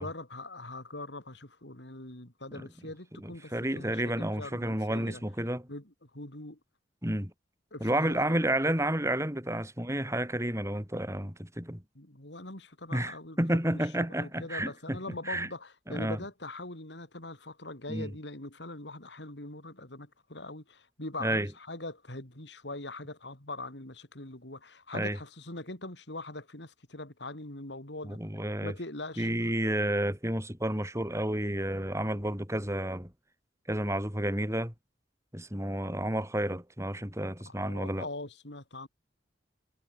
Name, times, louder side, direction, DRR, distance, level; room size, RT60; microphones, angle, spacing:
voice 1, 0.0-5.2 5.7-6.6 7.7-8.3 11.9-13.4 13.7-28.2 28.6-29.5 37.5-38.9, left 2 dB, 70° left, 4.4 m, -42 dB
voice 2, 3.2-5.7 7.0-7.3 7.8-11.8 12.9-15.5 15.9-16.2 17.9-18.1 21.2-21.5 24.9-25.2 28.0-28.7 29.2-33.1 33.7-34.7 35.3-38.1, right 1 dB, 15° right, 6.3 m, -31 dB
head